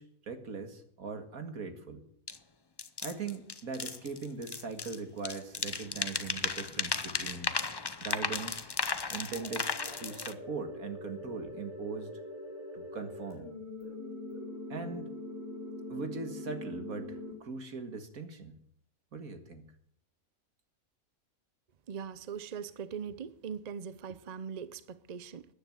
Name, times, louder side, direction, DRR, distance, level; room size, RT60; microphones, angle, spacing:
voice 1, 0.0-2.0 3.0-7.5 8.0-8.7 9.1-9.7 10.0-12.1 12.7-13.5 14.7-15.1 15.9-18.6 19.1-19.7, right 4 dB, 75° right, 2.3 m, -40 dB
sound 1, 2.3-2.4 2.8-5.0 5.2-10.3, left 4 dB, 30° left, 0.4 m, -35 dB
sound 2, 9.3-17.3, left 1 dB, 10° right, 6.0 m, -43 dB
voice 2, 21.9-25.5, right 7 dB, 40° right, 0.6 m, -41 dB
14.0 x 9.9 x 9.4 m
omnidirectional pair, 1.5 m